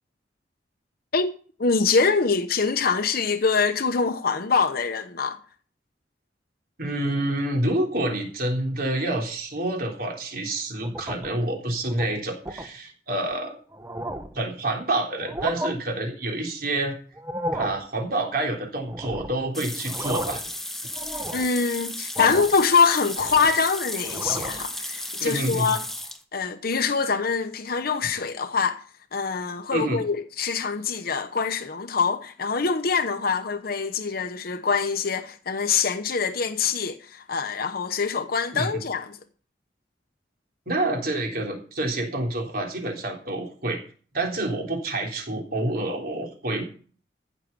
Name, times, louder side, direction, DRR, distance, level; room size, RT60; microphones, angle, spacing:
voice 1, 1.1-5.4 21.3-25.8 26.3-28.8 29.1-39.2, left 5 dB, 60° left, 0.9 m, -24 dB
voice 2, 6.8-13.6 14.3-16.9 17.5-20.4 25.2-25.7 29.7-30.0 38.5-38.8 40.7-43.8 44.1-46.6, right 1 dB, 60° right, 3.6 m, -28 dB
sound 1, 10.8-11.4 11.8-12.1 12.5-12.7 13.3-13.4 13.7-14.4 15.2-15.7 17.1-17.8 18.9-19.4 19.8-20.5 20.9-21.5 22.1-22.6 22.9-23.6 24.0-24.7, right 1 dB, 15° right, 1.1 m, -33 dB
sound 2, 19.5-26.2, left 1 dB, ahead, 1.4 m, -34 dB
15.0 x 6.5 x 6.9 m
head